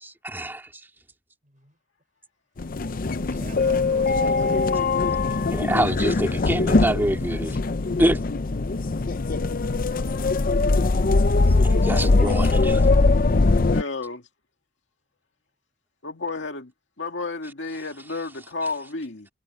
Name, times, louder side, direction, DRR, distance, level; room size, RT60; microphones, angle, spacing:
voice 1, 0.0-0.7 5.5-7.6 8.0-8.2 11.6-12.8, right 1 dB, 10° right, 2.2 m, -26 dB
sound 1, 2.6-13.8, left 3 dB, 50° left, 0.6 m, -21 dB
voice 2, 3.0-4.9 5.3-5.4, right 2 dB, 45° right, 6.0 m, -41 dB
voice 3, 13.7-14.2 16.0-16.7 17.0-19.3, left 3 dB, 75° left, 2.2 m, -31 dB
head